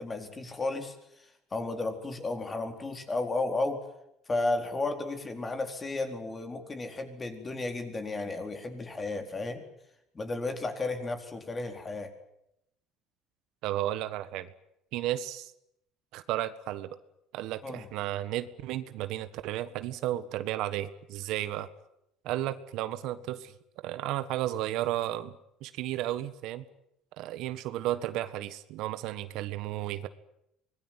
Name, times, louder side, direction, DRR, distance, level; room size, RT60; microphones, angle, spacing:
voice 1, 0.0-3.8 4.3-9.6 10.1-12.1 17.6-17.9, left 2 dB, 20° left, 5 dB, 4.3 m, -33 dB
voice 2, 13.6-14.5 14.9-15.5 16.1-16.9 17.3-21.7 22.2-23.5 23.8-25.3 25.6-26.6 27.2-30.1, right 14 dB, 65° right, 13 dB, 1.5 m, -33 dB
25.0 x 20.5 x 9.3 m, 0.79 s
cardioid pair, 130°, 0 cm